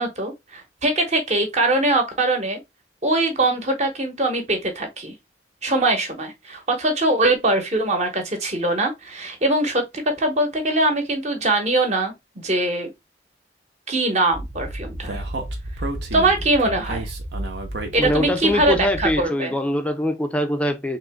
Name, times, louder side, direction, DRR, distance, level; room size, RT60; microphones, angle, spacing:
voice 1, 0.0-2.6 3.0-5.1 5.6-12.9 13.9-15.2 16.1-17.1 17.9-19.5, right 2 dB, 40° right, 1.1 m, -22 dB
Speech, 14.3-19.2, right 1 dB, 70° right, 1.0 m, -31 dB
voice 2, 18.0-21.0, left 1 dB, 5° left, 0.5 m, -23 dB
3.7 x 3.0 x 3.5 m
head